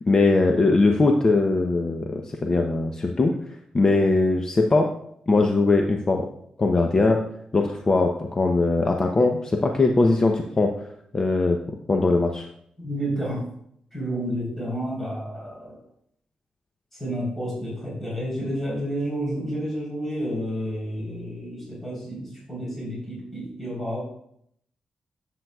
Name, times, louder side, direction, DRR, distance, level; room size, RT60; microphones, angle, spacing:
voice 1, 0.1-3.3 3.7-4.9 5.3-6.3 6.6-7.2 7.5-10.7 11.1-12.5, left 3 dB, 30° left, 3 dB, 0.7 m, -21 dB
voice 2, 12.8-13.4 13.9-15.8 16.9-24.0, equal, 10° left, -5 dB, 3.6 m, -30 dB
12.0 x 7.7 x 2.3 m, 0.70 s
cardioid pair, 120°, 2 cm